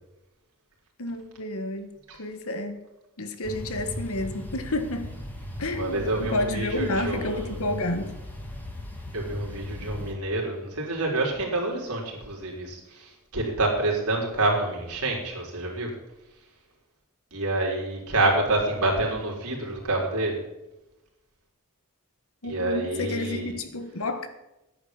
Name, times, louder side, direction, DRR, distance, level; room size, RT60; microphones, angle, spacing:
voice 1, 1.0-1.9 2.2-2.8 3.2-5.1 5.6-8.1 22.4-24.3, left 1 dB, 70° left, 9 dB, 1.5 m, -30 dB
sound 1, 3.4-10.1, left 1 dB, 10° left, 2.3 m, -38 dB
voice 2, 5.7-7.6 9.1-15.9 17.3-20.4 22.4-23.5, right 2 dB, 80° right, -1 dB, 4.2 m, -27 dB
10.5 x 8.7 x 7.4 m, 0.97 s
head